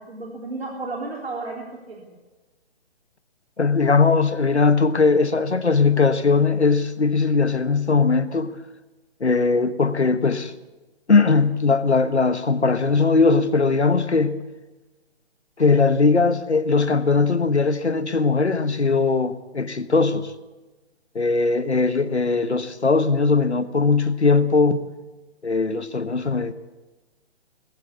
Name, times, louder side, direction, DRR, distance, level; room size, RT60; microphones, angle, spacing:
voice 1, 0.0-2.0, right 3 dB, 65° right, 3.7 m, -33 dB
voice 2, 3.6-8.5 9.2-10.5 11.1-14.4 15.6-20.3 21.1-24.9 25.4-26.5, left 4 dB, 85° left, 1.4 m, -19 dB
20.0 x 15.5 x 8.4 m
figure-of-eight pair, 135°, 33 cm